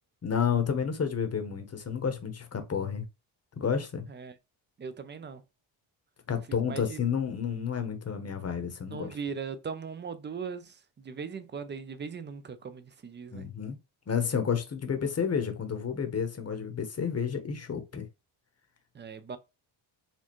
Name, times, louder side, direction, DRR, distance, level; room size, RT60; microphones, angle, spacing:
voice 1, 0.2-3.0 3.6-4.0 6.3-9.2 13.3-13.8 14.1-18.1, left 7 dB, 30° left, 0.9 m, -30 dB
voice 2, 4.8-5.4 6.6-7.0 8.9-13.4 18.9-19.4, right 6 dB, 25° right, 0.4 m, -39 dB
4.3 x 2.4 x 3.0 m
cardioid pair, 100°, 48 cm